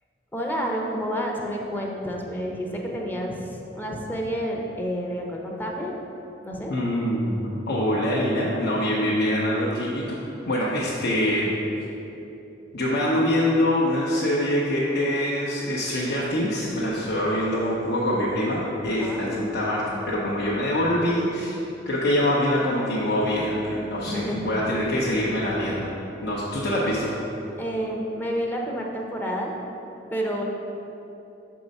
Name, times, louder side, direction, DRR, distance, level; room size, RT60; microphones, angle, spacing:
voice 1, 0.3-5.9 6.4-6.7 19.0-19.5 24.0-24.5 27.6-29.5 30.1-30.4, equal, 10° left, -1 dB, 0.7 m, -29 dB
voice 2, 6.7-10.2 10.5-11.5 12.7-21.6 21.9-25.9 26.2-27.1, left 1 dB, 60° left, -6 dB, 0.8 m, -24 dB
6.2 x 4.7 x 5.3 m, 3.0 s
head